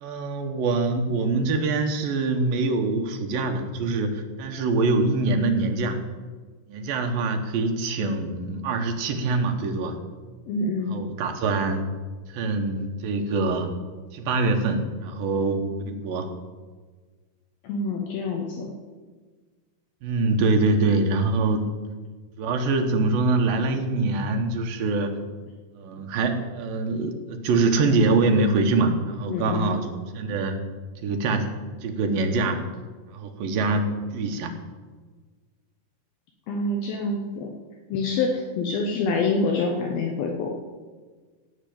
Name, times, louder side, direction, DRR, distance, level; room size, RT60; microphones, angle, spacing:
voice 1, 0.0-6.0 6.7-10.0 10.9-11.8 12.3-13.7 14.1-16.3 20.0-21.6 22.4-25.2 25.8-29.9 30.1-30.5 31.0-31.5 31.8-32.6 33.1-33.9 34.1-34.5, right 3 dB, 70° right, 4 dB, 2.8 m, -24 dB
voice 2, 10.5-11.0 17.6-18.7 29.3-29.7 36.5-37.5 37.9-40.5, left 3 dB, 70° left, 1 dB, 2.9 m, -26 dB
16.5 x 6.1 x 8.6 m, 1.4 s
omnidirectional pair, 4.6 m